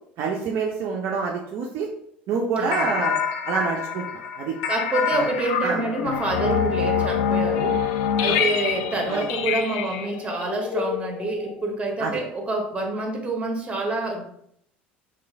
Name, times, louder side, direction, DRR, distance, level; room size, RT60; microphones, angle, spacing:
voice 1, 0.2-1.9 2.3-3.1 3.5-4.1 4.4-4.5 5.1-5.3 5.6-5.8 8.3-8.4 9.1-9.3 12.0-12.1, right 5 dB, 50° right, 0 dB, 0.4 m, -26 dB
voice 2, 2.6-2.9 4.7-7.8 8.2-14.3, right 2 dB, 20° right, 1 dB, 0.9 m, -27 dB
sound 1, 2.7-11.6, left 7 dB, 60° left, 0.3 m, -26 dB
3.0 x 2.4 x 3.4 m, 0.72 s
figure-of-eight pair, 70°, 6 cm